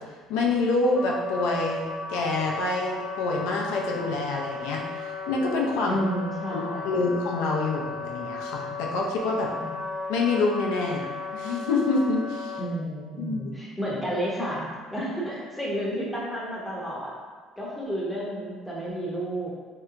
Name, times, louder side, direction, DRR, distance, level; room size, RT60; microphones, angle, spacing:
voice 1, 0.3-6.0 6.5-9.5 10.1-12.6 13.2-13.4, left 3 dB, 90° left, -1 dB, 0.5 m, -27 dB
Wind instrument woodwind instrument, 0.9-12.5, left 3 dB, 30° left, 1.0 m, -35 dB
voice 2, 5.9-7.1 9.6-9.8 12.6-17.1 17.6-19.5, equal, 5° left, -6 dB, 0.6 m, -31 dB
3.3 x 2.8 x 2.4 m, 1.5 s
cardioid pair, 155°, 0 cm